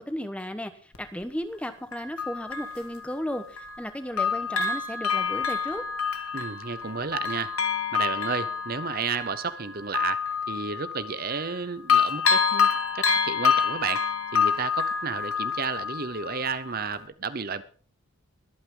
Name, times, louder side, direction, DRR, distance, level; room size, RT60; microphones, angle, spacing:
voice 1, 0.0-5.8, equal, 5° left, 1.0 m, -35 dB
Bell, 0.9-1.0 1.9-3.9 4.2-11.6 11.9-16.5 16.9-17.0, left 6 dB, 80° left, 1.8 m, -27 dB
voice 2, 6.3-7.5 7.9-12.7 12.9-17.6, right 5 dB, 45° right, 0.7 m, -32 dB
22.5 x 8.8 x 3.8 m
head